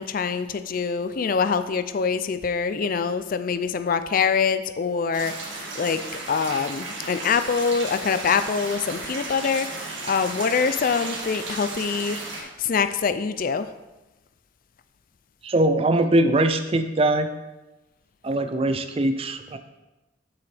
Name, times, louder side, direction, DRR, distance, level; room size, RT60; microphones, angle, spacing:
voice 1, 0.0-6.0 6.3-13.7, left 5 dB, 45° left, 11 dB, 0.4 m, -25 dB
sound 1, 5.1-12.4, right 3 dB, 70° right, 1.9 m, -34 dB
voice 2, 15.4-17.3 18.2-19.6, right 1 dB, 30° right, 8 dB, 0.5 m, -21 dB
8.7 x 7.6 x 3.4 m, 1.0 s
head